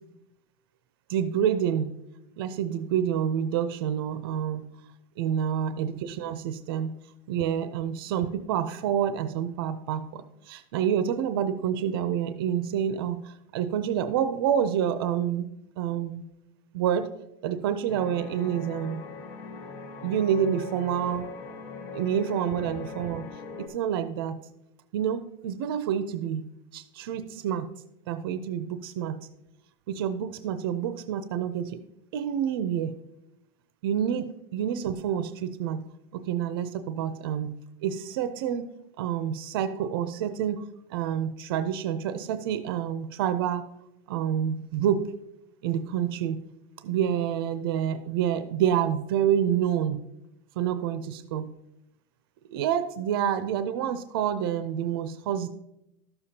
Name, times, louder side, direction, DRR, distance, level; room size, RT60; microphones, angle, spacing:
voice 1, 1.1-1.9 2.4-4.6 5.2-6.9 7.3-15.5 15.8-16.2 16.7-17.1 17.4-19.0 20.0-21.3 21.9-23.3 23.6-24.4 24.9-26.4 26.7-27.7 28.1-29.2 29.9-31.8 32.1-32.9 33.8-35.8 36.1-37.5 37.8-38.7 39.0-43.7 44.1-45.1 45.6-46.4 46.8-50.0 50.6-51.5 52.5-55.5, right 9 dB, 75° right, 11 dB, 0.5 m, -28 dB
sound 1, 17.9-23.7, left 4 dB, 45° left, 1.8 m, -40 dB
12.5 x 6.9 x 2.8 m, 0.87 s
supercardioid pair, 150°, 12 cm